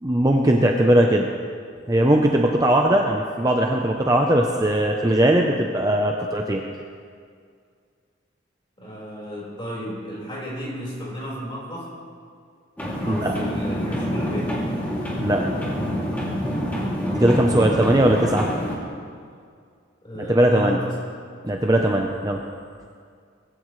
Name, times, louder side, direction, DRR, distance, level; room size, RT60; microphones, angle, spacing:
voice 1, 0.0-1.3 1.9-6.6 13.1-13.3 15.2-15.4 17.1-18.5 20.2-20.8 21.4-22.4, right 1 dB, 20° right, 1 dB, 0.7 m, -19 dB
voice 2, 8.8-11.9 13.0-14.5 17.5-17.9 20.0-20.9, equal, 25° left, -5 dB, 4.6 m, -33 dB
sound 1, 12.8-18.8, equal, 10° left, 2.6 m, -26 dB
20.5 x 15.5 x 3.2 m, 2.2 s
head